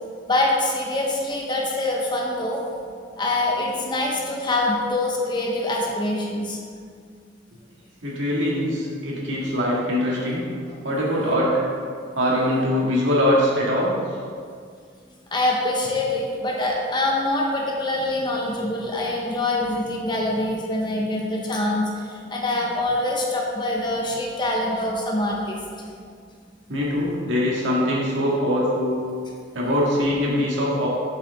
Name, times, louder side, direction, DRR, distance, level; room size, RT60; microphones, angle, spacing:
voice 1, 0.3-2.6 3.2-6.6 15.3-25.9, left 2 dB, 25° left, -1 dB, 1.0 m, -24 dB
voice 2, 8.0-10.5 10.8-11.7 12.2-14.0 26.7-29.0 29.5-30.9, equal, 80° right, -5 dB, 1.9 m, -22 dB
7.6 x 6.8 x 3.6 m, 2.1 s
head